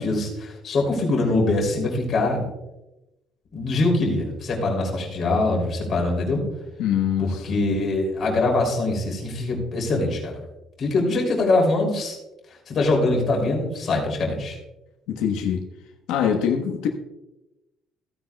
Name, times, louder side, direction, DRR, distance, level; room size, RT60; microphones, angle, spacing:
voice 1, 0.0-2.4 3.5-6.4 7.2-10.4 10.8-12.2 12.7-14.6, left 2 dB, 35° left, -1 dB, 3.0 m, -23 dB
voice 2, 6.8-7.6 15.1-15.6 16.1-16.9, left 8 dB, 85° left, 2 dB, 1.1 m, -24 dB
15.5 x 9.7 x 2.3 m, 0.97 s
cardioid pair, 175°, 0 cm